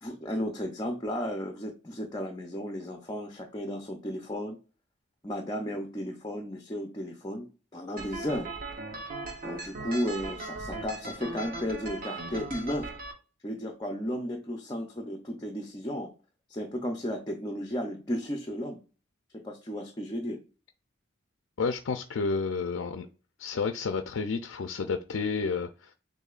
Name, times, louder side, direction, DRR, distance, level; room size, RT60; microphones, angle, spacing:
voice 1, 0.0-4.6 5.2-7.5 7.7-8.5 9.4-12.9 13.4-16.1 16.5-18.8 19.3-20.4, equal, 20° left, 0.6 m, -34 dB
sound 1, 8.0-13.1, right 2 dB, 45° right, 0.9 m, -38 dB
voice 2, 21.6-23.1 23.4-25.9, left 4 dB, 90° left, 0.5 m, -30 dB
6.6 x 2.7 x 2.4 m
head